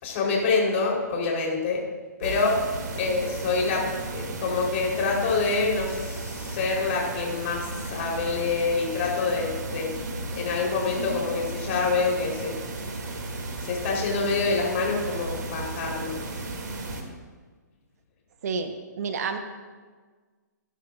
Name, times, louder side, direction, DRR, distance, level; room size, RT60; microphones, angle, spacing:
voice 1, 0.0-1.8 2.2-2.6 3.0-9.9 10.3-12.6 13.6-16.2, left 4 dB, 45° left, -2 dB, 4.7 m, -26 dB
sound 1, 2.2-17.0, right 2 dB, 75° right, 3.1 m, -35 dB
voice 2, 18.4-19.4, right 5 dB, 55° right, 6 dB, 1.3 m, -30 dB
22.0 x 11.5 x 2.7 m, 1.4 s
hypercardioid pair, 150°, 10 cm